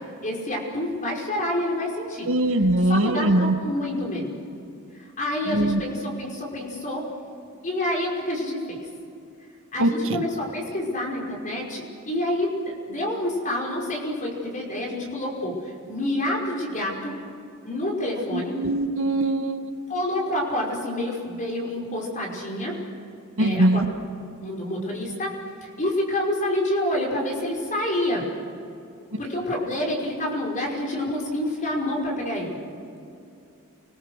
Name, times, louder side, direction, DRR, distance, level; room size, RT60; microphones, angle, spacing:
voice 1, 0.2-4.3 5.2-7.1 7.6-8.8 9.7-17.1 17.6-18.6 19.9-22.8 23.4-23.8 24.4-25.3 25.8-28.2 29.2-32.6, left 1 dB, 35° left, -2 dB, 5.4 m, -28 dB
voice 2, 2.3-3.5 5.5-5.8 9.8-9.9 18.3-19.6 23.4-23.8, right 1 dB, 65° right, 6 dB, 1.8 m, -21 dB
29.5 x 21.5 x 6.6 m, 2.7 s
head